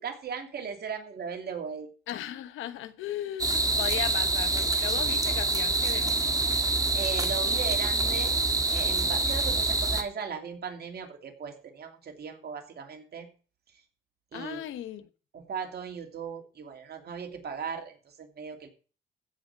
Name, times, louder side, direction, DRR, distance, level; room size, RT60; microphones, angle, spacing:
voice 1, 0.0-1.9 6.9-8.4 8.7-13.3 14.3-14.6 15.3-18.7, right 6 dB, 55° right, 2.9 m, -37 dB
voice 2, 2.1-6.2 14.3-15.0, left 12 dB, 85° left, 1.2 m, -36 dB
sound 1, 3.4-10.0, right 2 dB, 15° right, 1.8 m, -26 dB
15.5 x 5.3 x 7.3 m
cardioid pair, 90°, 20 cm